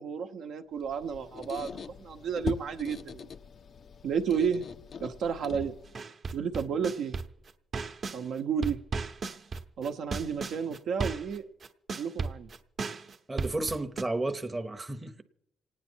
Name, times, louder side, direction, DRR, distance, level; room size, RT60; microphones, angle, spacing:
voice 1, 0.0-3.3 4.0-4.7 5.0-5.7 6.3-7.2 8.1-8.8 9.8-11.4 12.0-12.5, right 6 dB, 75° right, 0.9 m, -32 dB
Squeak, 0.8-6.0, left 6 dB, 50° left, 0.4 m, -42 dB
sound 1, 5.9-8.2 8.6-14.0, right 4 dB, 45° right, 0.9 m, -35 dB
voice 2, 13.3-15.2, right 2 dB, 20° right, 0.8 m, -32 dB
27.5 x 9.4 x 4.4 m
cardioid pair, 90°, 0 cm